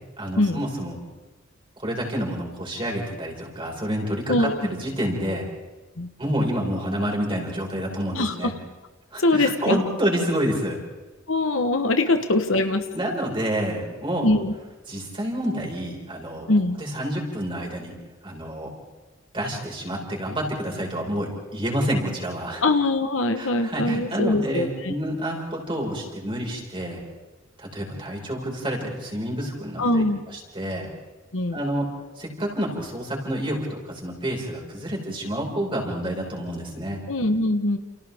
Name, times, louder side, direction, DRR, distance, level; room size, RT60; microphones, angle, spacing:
voice 1, 0.2-1.0 1.8-5.5 6.2-8.5 9.1-10.8 12.9-14.3 14.9-16.5 16.8-17.9 18.2-18.7 19.3-22.6 23.4-27.0 27.6-30.9 31.5-31.9 32.2-37.0, equal, 25° right, -1 dB, 5.4 m, -28 dB
voice 2, 4.3-4.7 6.0-6.1 8.1-8.5 9.2-9.8 11.3-12.8 14.2-14.5 16.5-16.8 22.6-24.9 29.8-30.2 31.3-31.6 37.1-37.8, left 2 dB, 65° left, 7 dB, 1.3 m, -22 dB
29.5 x 29.0 x 3.6 m, 1.2 s
head